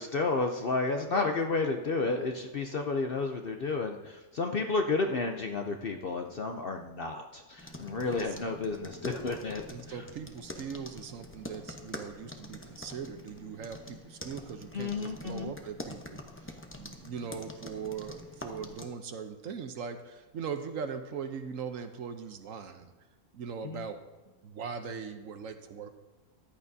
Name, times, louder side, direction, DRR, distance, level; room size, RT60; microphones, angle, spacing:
voice 1, 0.0-9.6 14.7-15.5 23.6-23.8, left 3 dB, 50° left, 4 dB, 0.7 m, -31 dB
voice 2, 1.0-1.4 2.0-2.2 8.0-8.6 9.7-22.9 23.3-24.0 24.4-25.9, right 6 dB, 65° right, 8 dB, 1.1 m, -40 dB
sound 1, 7.6-18.9, left 1 dB, 10° left, 0.6 m, -46 dB
14.5 x 11.0 x 2.7 m, 1.1 s
omnidirectional pair, 1.6 m